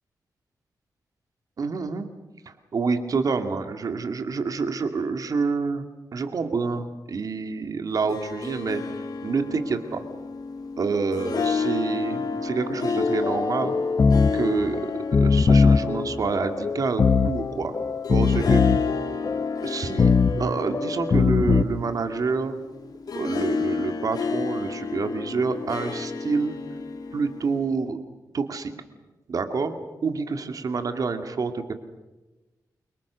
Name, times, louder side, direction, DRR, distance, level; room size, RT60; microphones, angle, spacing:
voice 1, 1.6-2.0 2.5-8.8 9.2-10.0 10.8-13.8 14.3-14.8 15.2-17.8 18.1-18.6 19.6-20.1 20.4-22.5 23.1-26.6 27.1-28.0 28.3-28.7 29.3-29.7 30.0-31.7, right 4 dB, 55° right, 8 dB, 2.4 m, -27 dB
Harp, 7.9-27.7, left 5 dB, 65° left, 3.0 m, -31 dB
sound 1, 13.0-21.6, left 4 dB, 40° left, 1.0 m, -22 dB
29.5 x 25.0 x 6.4 m, 1.1 s
wide cardioid pair, 115°, 7 cm